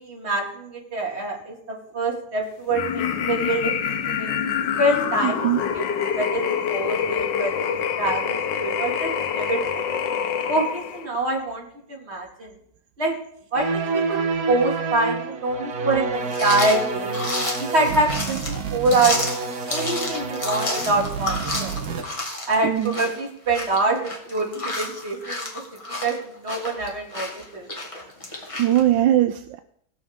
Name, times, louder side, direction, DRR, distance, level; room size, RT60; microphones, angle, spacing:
voice 1, 0.0-3.9 4.2-4.3 4.8-5.5 5.7-5.8 6.1-7.6 8.0-9.9 10.5-11.6 11.9-12.5 13.0-13.1 13.5-14.2 14.5-17.2 17.6-22.0 22.5-24.0 24.3-25.5 25.9-27.7, right 2 dB, 35° right, 0 dB, 2.5 m, -25 dB
sound 1, 2.7-11.1, left 8 dB, 80° left, 1.5 m, -26 dB
voice 2, 5.2-5.6 22.6-23.0 28.6-29.6, right 12 dB, 80° right, 9 dB, 1.3 m, -20 dB
sound 2, 13.5-22.0, right 3 dB, 60° right, 1.4 m, -28 dB
sound 3, 16.3-28.8, left 2 dB, 20° left, 1.8 m, -31 dB
19.0 x 7.1 x 3.6 m, 0.69 s
omnidirectional pair, 2.0 m